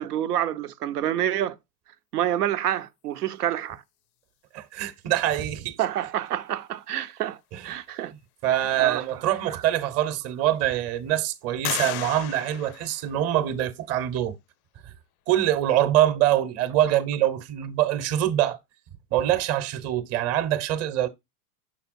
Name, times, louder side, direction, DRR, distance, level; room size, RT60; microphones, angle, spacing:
voice 1, 0.0-1.6 2.1-3.8 5.8-7.4 7.6-8.1 8.6-9.0 9.5-9.6, right 11 dB, 90° right, 0.8 m, -28 dB
voice 2, 4.5-5.8 7.5-7.6 8.4-14.3 15.3-18.6 19.1-21.1, right 12 dB, 35° right, 0.9 m, -24 dB
sound 1, 9.4-9.5 10.1-10.7 11.6-13.6, left 15 dB, 70° left, 0.6 m, -35 dB
7.0 x 5.5 x 2.5 m
hypercardioid pair, 125°, 45 cm